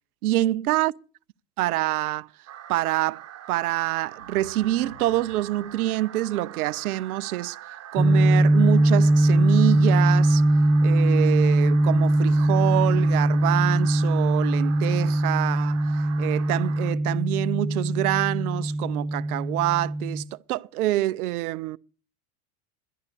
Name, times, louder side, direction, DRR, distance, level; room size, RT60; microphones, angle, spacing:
voice 1, 0.2-0.9 1.6-2.3 2.7-7.6 7.9-10.4 10.8-15.8 16.2-21.8, right 16 dB, 80° right, 0.5 m, -26 dB
sound 1, 2.5-16.9, right 11 dB, 35° right, 1.2 m, -43 dB
sound 2, 4.2-7.2 12.1-15.3, equal, 85° left, 7.8 m, -50 dB
sound 3, 8.0-20.2, right 1 dB, 5° right, 0.5 m, -21 dB
12.0 x 11.0 x 6.6 m
hypercardioid pair, 90°, 44 cm